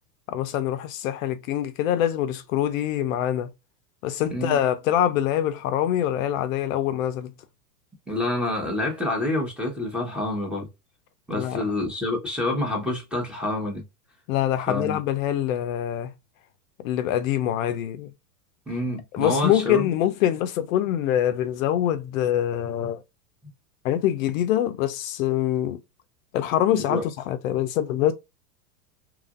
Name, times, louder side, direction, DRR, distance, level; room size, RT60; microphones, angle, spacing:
voice 1, 0.3-3.5 4.0-7.3 11.3-11.6 14.3-16.1 16.8-18.1 19.1-23.0 23.8-25.8 26.3-28.1, left 11 dB, 60° left, 0.5 m, -24 dB
voice 2, 8.1-10.7 11.3-13.8 14.7-15.0 18.7-19.9 26.7-27.1, left 1 dB, ahead, 0.8 m, -27 dB
2.9 x 2.5 x 2.4 m
hypercardioid pair, 125°, 46 cm